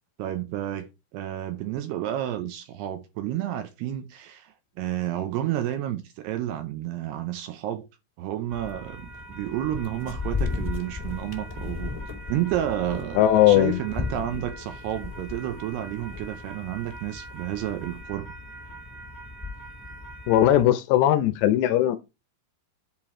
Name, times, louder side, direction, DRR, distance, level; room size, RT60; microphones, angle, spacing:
voice 1, 0.2-7.9 8.2-12.0 12.3-18.3, right 12 dB, 80° right, 2.5 m, -31 dB
sound 1, 8.5-20.7, left 3 dB, 15° left, 1.4 m, -36 dB
voice 2, 13.2-13.8 20.3-22.0, left 12 dB, 80° left, 2.7 m, -19 dB
10.5 x 4.5 x 4.3 m
omnidirectional pair, 5.3 m